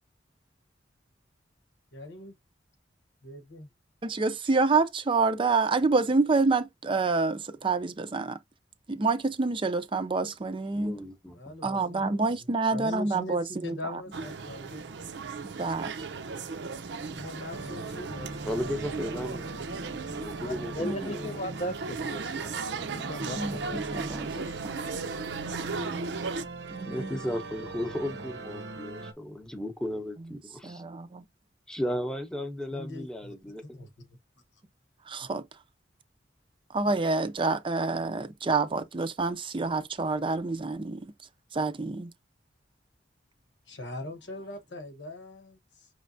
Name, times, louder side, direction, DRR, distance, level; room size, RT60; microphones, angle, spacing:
voice 1, 1.9-2.3 3.2-3.7 11.3-15.7 17.1-18.6 26.0-26.4 32.7-33.4 33.7-33.9 43.7-45.9, left 1 dB, 85° left, 1.1 m, -42 dB
voice 2, 4.0-8.4 8.9-11.0 11.6-14.0 15.4-15.9 20.8-21.1 23.3-24.6 26.7-27.2 30.6-31.3 35.1-35.4 36.7-41.1 41.5-42.1, right 3 dB, 30° right, 0.5 m, -28 dB
voice 3, 10.8-11.5 18.4-19.5 20.1-21.4 26.9-30.8 31.7-33.6, left 1 dB, 5° left, 0.8 m, -35 dB
sound 1, 14.1-26.4, right 4 dB, 70° right, 0.6 m, -36 dB
sound 2, 17.5-29.1, right 2 dB, 90° right, 0.9 m, -41 dB
voice 4, 20.4-24.5 25.1-25.2, equal, 40° left, 0.6 m, -38 dB
5.5 x 3.2 x 2.6 m
head